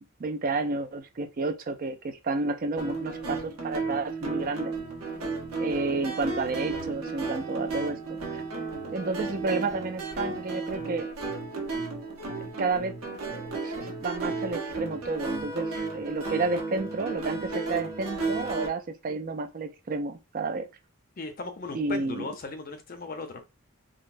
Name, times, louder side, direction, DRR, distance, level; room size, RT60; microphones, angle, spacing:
voice 1, 0.2-4.7 5.6-8.4 8.9-11.1 12.6-13.0 13.3-20.7 21.7-22.3, right 3 dB, 40° right, 0.4 m, -31 dB
sound 1, 2.8-18.7, right 3 dB, 75° right, 0.9 m, -33 dB
voice 2, 21.2-23.4, left 3 dB, 40° left, 0.6 m, -37 dB
3.8 x 2.0 x 2.5 m
head